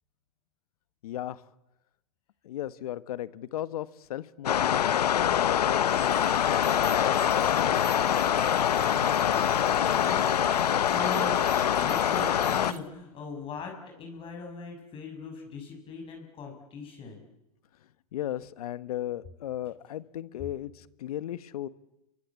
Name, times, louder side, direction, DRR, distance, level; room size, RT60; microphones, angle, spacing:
voice 1, 1.0-1.5 2.4-8.1 18.1-21.7, left 12 dB, 70° left, 1.6 m, -36 dB
sound 1, 4.5-12.7, left 10 dB, 90° left, 1.1 m, -24 dB
sound 2, 5.9-12.8, right 12 dB, 65° right, 4.2 m, -45 dB
voice 2, 8.7-17.3, left 4 dB, 25° left, 6.4 m, -41 dB
29.0 x 23.5 x 8.5 m
hypercardioid pair, 135°, 20 cm